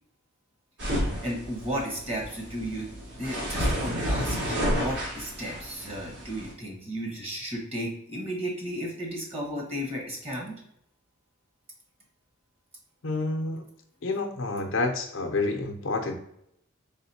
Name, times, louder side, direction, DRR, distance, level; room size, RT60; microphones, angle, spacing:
sound 1, 0.8-6.5, equal, 60° right, 1.5 m, -31 dB
voice 1, 1.2-2.9 3.2-10.6, equal, 30° right, -2 dB, 1.3 m, -34 dB
voice 2, 13.0-13.6 14.0-16.1, left 3 dB, 65° left, 3 dB, 0.6 m, -28 dB
4.1 x 3.6 x 2.8 m, 0.74 s
head